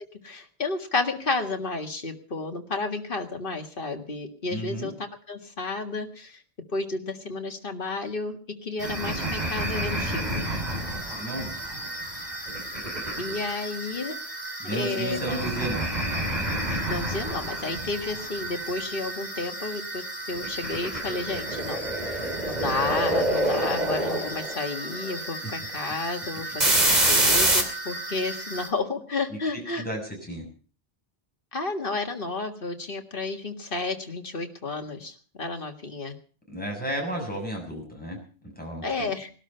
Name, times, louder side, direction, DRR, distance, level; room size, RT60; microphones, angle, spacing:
voice 1, 0.2-6.4 6.7-10.5 13.2-14.2 14.7-15.4 16.7-29.8 31.5-36.2 38.8-39.3, left 3 dB, 55° left, 5 dB, 2.0 m, -32 dB
voice 2, 4.5-4.9 11.1-11.5 14.6-15.9 25.4-25.5 29.3-29.4 29.8-30.0 30.3-30.4 36.5-39.1, right 1 dB, 10° left, -1 dB, 6.8 m, -33 dB
sound 1, 8.8-28.7, right 1 dB, 40° right, 2.9 m, -28 dB
20.0 x 12.5 x 5.6 m, 0.41 s
omnidirectional pair, 1.1 m